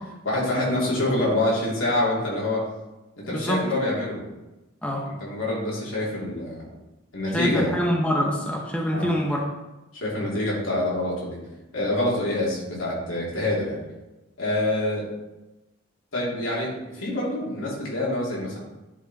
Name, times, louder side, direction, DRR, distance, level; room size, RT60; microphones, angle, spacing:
voice 1, 0.2-2.7 3.2-4.2 5.1-6.6 7.1-7.7 8.9-9.1 9.9-11.4 11.7-13.8 14.4-15.1 16.1-18.6, left 1 dB, 75° left, -5 dB, 3.0 m, -26 dB
voice 2, 3.3-3.6 4.8-5.0 7.3-9.4, equal, 5° left, -1 dB, 0.8 m, -25 dB
10.0 x 4.7 x 4.1 m, 1.0 s
head